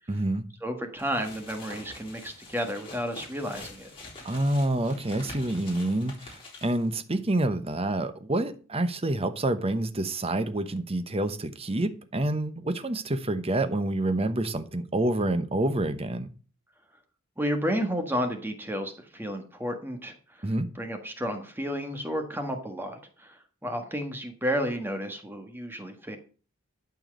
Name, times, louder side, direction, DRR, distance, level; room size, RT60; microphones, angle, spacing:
voice 1, 0.1-0.4 4.2-16.3 20.4-20.7, right 1 dB, 30° right, 1.0 m, -28 dB
voice 2, 0.6-3.9 17.4-20.5 20.7-26.2, equal, 10° right, 1.5 m, -32 dB
sound 1, 1.0-6.9, left 2 dB, 25° left, 4.3 m, -46 dB
12.5 x 4.7 x 7.7 m
head